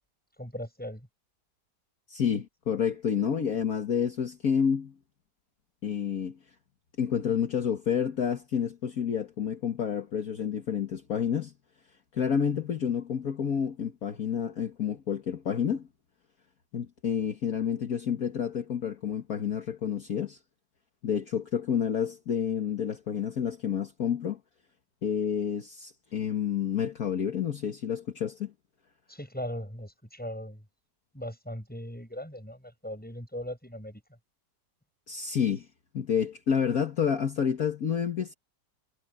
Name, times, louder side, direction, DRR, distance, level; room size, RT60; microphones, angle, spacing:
voice 1, 0.4-1.1 29.1-30.6 31.1-34.0, equal, 5° left, 7.5 m, -39 dB
voice 2, 2.1-4.9 5.8-6.4 7.0-11.5 12.1-15.9 16.7-20.4 21.0-24.4 25.0-28.5 35.1-35.7 35.9-38.3, left 8 dB, 55° left, 1.9 m, -29 dB
omnidirectional pair, 1.9 m